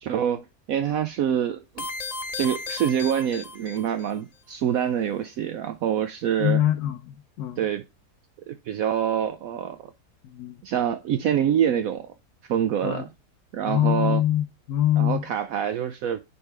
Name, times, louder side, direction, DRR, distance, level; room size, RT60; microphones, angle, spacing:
voice 1, 0.0-1.9 2.4-6.6 7.6-7.8 8.5-9.9 10.6-12.1 12.5-13.1 13.5-14.2 15.0-16.2, right 9 dB, 70° right, 0.9 m, -26 dB
sound 1, 1.8-4.1, left 3 dB, 40° left, 0.5 m, -35 dB
voice 2, 6.4-7.7 10.2-10.6 12.8-13.0 13.7-15.2, left 12 dB, 80° left, 1.2 m, -24 dB
9.6 x 3.5 x 3.3 m
omnidirectional pair, 1.7 m